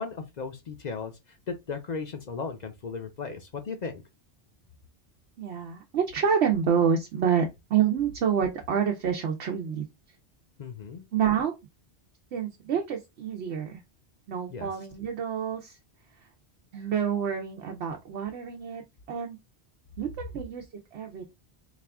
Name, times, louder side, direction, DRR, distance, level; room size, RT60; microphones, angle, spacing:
voice 1, 0.0-4.0 10.6-11.1 14.5-14.7, left 5 dB, 50° left, 0.6 m, -36 dB
voice 2, 5.4-9.8 11.1-11.5 12.3-13.8 14.3-15.8 16.2-16.3 16.7-18.8 19.1-19.4 20.0-20.6 20.9-21.2, right 7 dB, 80° right, 0.9 m, -28 dB
4.1 x 2.4 x 3.3 m
omnidirectional pair, 1.1 m